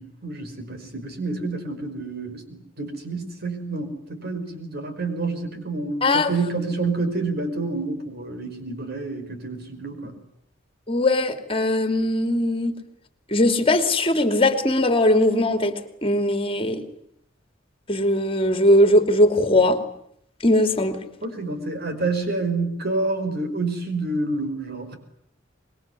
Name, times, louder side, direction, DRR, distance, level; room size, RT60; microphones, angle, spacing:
voice 1, 0.0-10.2 21.2-24.9, right 3 dB, 55° right, 7 dB, 5.4 m, -28 dB
voice 2, 10.9-12.8 13.3-15.7 16.0-16.8 17.9-19.8 20.4-21.0, left 1 dB, 30° left, 9 dB, 2.7 m, -20 dB
26.0 x 21.5 x 9.8 m, 0.71 s
head